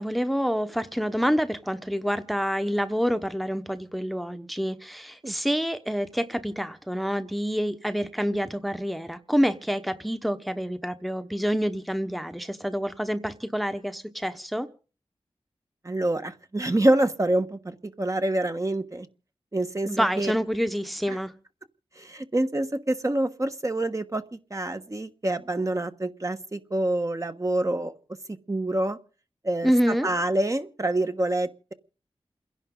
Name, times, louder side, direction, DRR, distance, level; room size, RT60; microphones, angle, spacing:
voice 1, 0.0-14.7 19.9-21.3 29.6-30.1, equal, ahead, 1.1 m, -27 dB
voice 2, 15.8-19.1 19.5-20.3 21.1-21.2 22.0-27.9 28.3-29.0 29.4-31.7, right 1 dB, 30° right, 1.3 m, -27 dB
29.0 x 11.0 x 3.9 m
cardioid pair, 50°, 11 cm